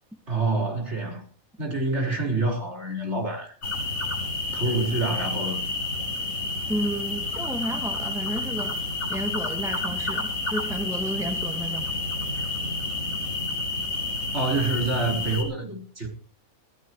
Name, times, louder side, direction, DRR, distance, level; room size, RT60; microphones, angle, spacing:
voice 1, 0.3-1.2 1.6-3.5 4.5-5.6 14.3-16.1, right 2 dB, 50° right, 5.1 m, -27 dB
sound 1, 3.6-15.4, left 2 dB, 75° left, 6.6 m, -30 dB
voice 2, 6.7-8.8 9.1-11.9, equal, ahead, 1.7 m, -32 dB
22.5 x 16.0 x 3.2 m
omnidirectional pair, 1.5 m